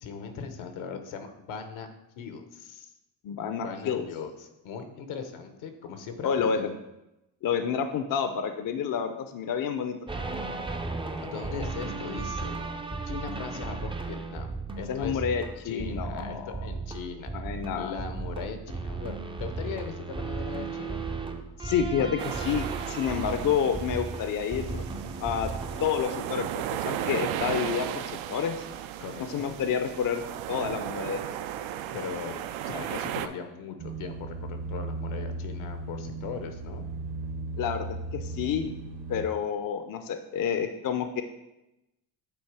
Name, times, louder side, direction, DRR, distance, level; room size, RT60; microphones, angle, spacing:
voice 1, 0.0-1.9 2.2-2.9 3.6-6.8 11.2-12.6 13.1-14.5 14.8-15.2 15.6-17.3 17.7-21.1 29.0-29.5 31.9-32.3 32.6-36.9, left 6 dB, 75° left, 7 dB, 1.0 m, -39 dB
voice 2, 3.2-4.0 6.2-6.6 7.4-10.0 14.9-16.6 17.3-18.0 21.6-24.8 25.2-25.5 25.8-28.6 29.2-30.2 30.5-31.2 37.6-38.7 39.1-41.2, left 7 dB, 45° left, 8 dB, 0.6 m, -29 dB
sound 1, 10.1-26.0, right 3 dB, 10° right, 0.4 m, -35 dB
sound 2, 22.2-33.3, right 11 dB, 70° right, 0.5 m, -35 dB
sound 3, 33.8-39.3, right 3 dB, 50° right, 0.9 m, -36 dB
8.5 x 2.9 x 4.7 m, 0.92 s
cardioid pair, 85°, 48 cm